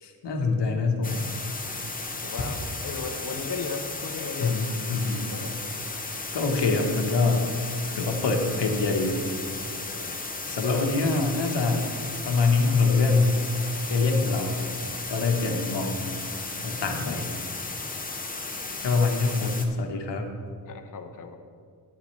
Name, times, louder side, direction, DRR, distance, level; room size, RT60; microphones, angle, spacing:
voice 1, 0.0-1.3 4.4-5.3 6.3-7.5 7.9-9.2 10.1-10.2 10.5-11.8 12.2-13.4 13.9-14.5 15.1-16.1 16.6-17.3 18.8-20.3, left 3 dB, 90° left, 3 dB, 1.2 m, -24 dB
sound 1, 1.0-19.7, left 3 dB, 20° left, 0.9 m, -35 dB
voice 2, 2.2-4.6 5.0-5.6 7.9-8.2 9.9-10.2 10.7-10.9 15.3-15.4 15.7-15.9 17.1-17.4 20.7-21.4, left 4 dB, 50° left, 4 dB, 0.8 m, -37 dB
12.0 x 9.5 x 3.2 m, 2.2 s
wide cardioid pair, 110°, 41 cm